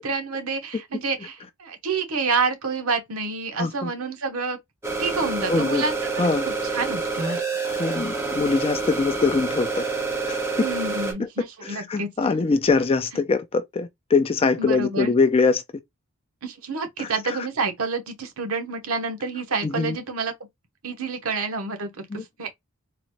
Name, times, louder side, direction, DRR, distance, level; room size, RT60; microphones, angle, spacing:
voice 1, 0.0-4.6 5.0-7.4 10.6-12.1 14.6-15.1 16.4-20.3 20.8-22.5, right 4 dB, 75° right, 0.9 m, -28 dB
voice 2, 3.6-3.9 5.5-5.8 6.2-6.5 7.8-9.8 10.3-10.4 11.9-15.6 17.0-17.4 19.6-20.0 22.1-22.2, left 4 dB, 25° left, 0.4 m, -23 dB
sound 1, 4.8-11.1, right 4 dB, 10° right, 1.0 m, -27 dB
3.8 x 2.2 x 2.9 m
head